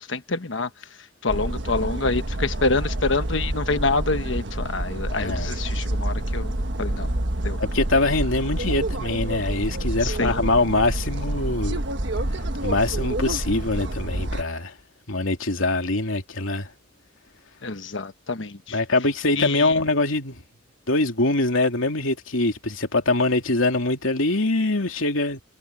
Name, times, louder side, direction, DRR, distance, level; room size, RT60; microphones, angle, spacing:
voice 1, 0.1-0.7 1.2-7.1 7.4-7.6 10.0-10.4 17.6-18.8 19.3-19.8, left 3 dB, 70° left, 1.2 m, -27 dB
sound 1, 1.3-14.4, right 1 dB, 60° right, 1.5 m, -28 dB
voice 2, 5.2-5.5 7.6-11.8 12.6-14.7 15.1-16.7 18.7-20.4 20.9-25.4, left 2 dB, 85° left, 2.9 m, -23 dB
head